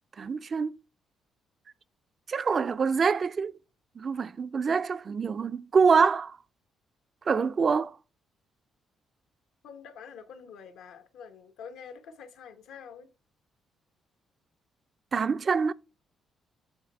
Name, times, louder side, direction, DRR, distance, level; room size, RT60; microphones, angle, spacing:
voice 1, 0.2-0.8 2.3-3.5 4.0-6.4 7.3-8.0 15.1-15.7, right 5 dB, 40° right, 0.3 m, -25 dB
voice 2, 9.6-13.1, left 6 dB, 85° left, 1.0 m, -46 dB
8.1 x 3.1 x 5.4 m
cardioid pair, 90°, 0 cm